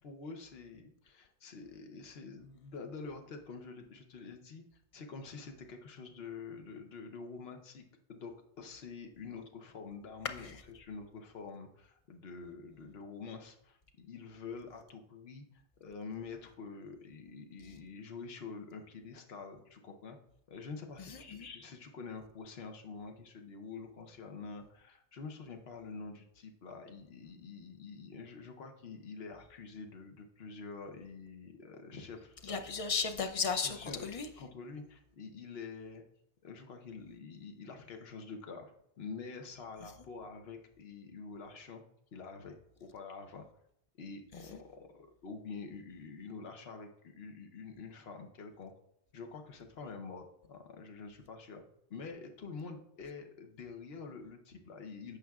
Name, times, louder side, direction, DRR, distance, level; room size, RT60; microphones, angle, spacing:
voice 1, 0.0-4.6 4.9-8.3 8.6-15.4 15.8-20.2 20.5-32.6 33.6-34.1 34.4-36.0 36.4-41.8 42.1-43.5 44.0-48.7 49.1-51.6 51.9-55.2, left 4 dB, 65° left, 1.1 m, -47 dB
voice 2, 21.0-21.5 32.4-33.8 34.0-34.3 44.5-44.6, left 5 dB, 40° left, 0.5 m, -35 dB
15.0 x 5.0 x 2.4 m
omnidirectional pair, 1.1 m